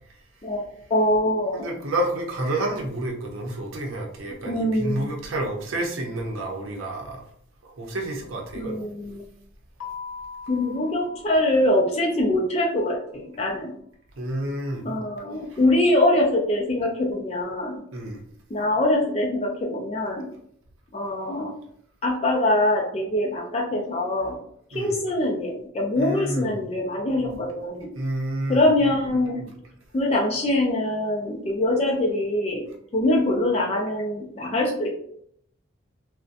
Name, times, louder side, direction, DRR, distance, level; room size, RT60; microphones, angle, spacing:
voice 1, 0.4-1.8 4.4-5.1 8.5-9.2 10.5-13.7 14.8-17.8 18.5-20.3 20.9-21.5 22.0-24.4 24.7-27.9 28.5-29.5 29.9-32.6 32.9-34.9, left 1 dB, 30° left, 0 dB, 0.3 m, -23 dB
voice 2, 1.5-7.2 7.6-8.8 14.2-14.9 15.5-15.6 17.9-18.2 24.7-24.9 26.0-26.5 27.9-28.6, right 1 dB, 90° right, 1 dB, 0.6 m, -29 dB
Keyboard (musical), 9.8-12.4, left 5 dB, 85° left, 0.6 m, -41 dB
2.6 x 2.1 x 2.4 m, 0.69 s
head